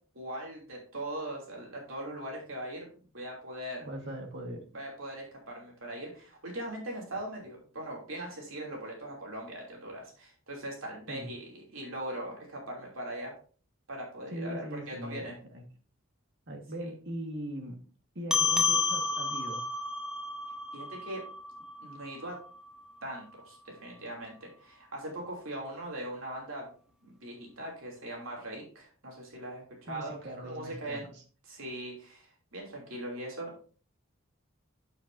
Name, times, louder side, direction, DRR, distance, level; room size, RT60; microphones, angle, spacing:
voice 1, 0.1-2.9 3.1-3.9 4.7-13.3 13.9-15.3 20.7-21.2 21.8-22.4 23.0-26.7 27.0-31.1 31.5-33.6, right 1 dB, 75° right, -1 dB, 3.0 m, -40 dB
voice 2, 3.8-4.6 11.1-11.3 14.3-15.6 16.5-17.8 18.2-19.6 29.9-31.2, right 1 dB, 55° right, 2 dB, 1.8 m, -40 dB
sound 1, 18.3-23.1, left 3 dB, 5° right, 0.7 m, -31 dB
9.0 x 7.6 x 2.7 m, 0.41 s
head